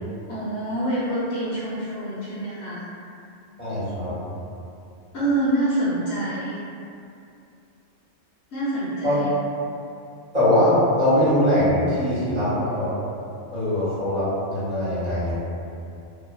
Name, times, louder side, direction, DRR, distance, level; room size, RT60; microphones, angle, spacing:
voice 1, 0.3-2.8 5.1-6.6 8.5-9.2, right 1 dB, 60° left, -10 dB, 1.0 m, -26 dB
voice 2, 3.6-4.1 9.0-9.2 10.3-12.9 13.5-15.4, left 1 dB, 35° right, -14 dB, 1.0 m, -21 dB
2.5 x 2.4 x 2.2 m, 2.6 s
omnidirectional pair, 1.3 m